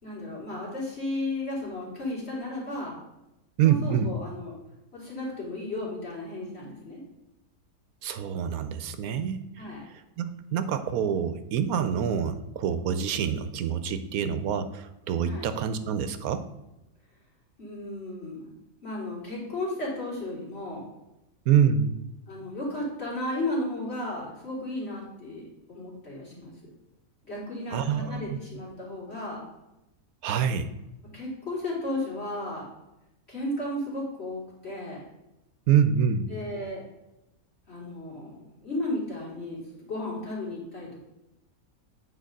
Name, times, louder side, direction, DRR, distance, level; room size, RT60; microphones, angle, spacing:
voice 1, 0.0-2.9 3.6-4.5 4.9-7.0 9.6-9.8 15.2-15.5 17.6-18.5 18.8-20.9 22.3-26.5 27.2-29.4 31.1-32.7 33.3-35.0 36.3-36.8 37.7-41.0, left 1 dB, 45° left, -5 dB, 3.5 m, -34 dB
voice 2, 3.6-4.1 8.0-9.4 10.2-16.4 21.5-21.9 27.7-28.4 30.2-30.7 35.7-36.3, right 8 dB, 75° right, 11 dB, 1.1 m, -26 dB
8.9 x 4.8 x 5.2 m, 0.93 s
omnidirectional pair, 1.5 m